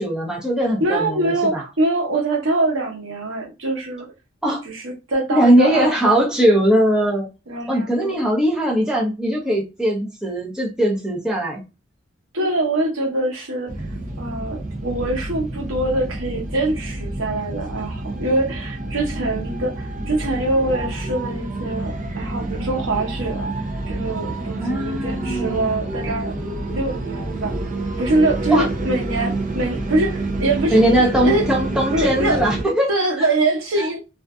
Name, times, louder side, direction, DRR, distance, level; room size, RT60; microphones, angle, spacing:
voice 1, 0.0-1.6 4.4-4.6 5.3-7.3 7.7-11.6 19.1-19.3 24.6-25.7 28.5-28.7 30.7-32.9 33.2-33.3 33.8-33.9, equal, 5° right, 0.7 m, -20 dB
voice 2, 0.8-4.1 4.6-6.2 7.5-8.1 12.3-13.7 14.2-23.5 23.9-26.4 26.7-27.5 28.0-31.4 31.9-32.4 32.9-34.0, right 2 dB, 90° right, 0.9 m, -23 dB
sound 1, 13.7-32.6, right 2 dB, 40° right, 0.5 m, -28 dB
2.5 x 2.4 x 2.3 m
head